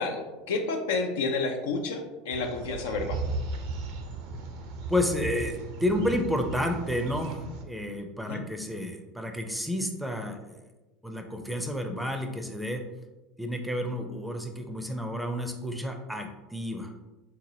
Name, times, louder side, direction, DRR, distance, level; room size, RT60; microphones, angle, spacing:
voice 1, 0.0-3.2 8.2-8.4, left 3 dB, 70° left, 4 dB, 0.4 m, -30 dB
sound 1, 2.3-7.6, right 3 dB, 60° right, 0.5 m, -36 dB
voice 2, 4.9-10.6 11.0-12.8 13.4-16.9, left 1 dB, 5° right, 4 dB, 0.5 m, -31 dB
3.8 x 2.9 x 2.7 m, 1.1 s
hypercardioid pair, 75°, 0 cm